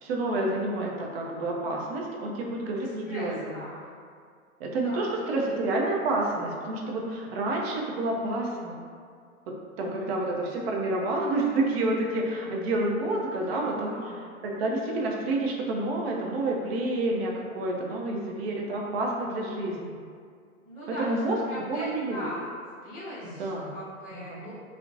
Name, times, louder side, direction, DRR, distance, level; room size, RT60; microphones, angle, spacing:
voice 1, 0.0-3.6 4.6-8.8 9.5-20.0 21.0-21.4 21.7-22.2 23.2-23.7 24.1-24.4, right 2 dB, 45° right, -1 dB, 0.5 m, -29 dB
voice 2, 2.8-3.9 4.8-5.6 9.8-10.2 13.2-14.2 20.6-21.1 21.5-22.5 22.8-24.5, equal, 20° left, -13 dB, 0.6 m, -41 dB
2.5 x 2.1 x 2.5 m, 2.1 s
hypercardioid pair, 125°, 43 cm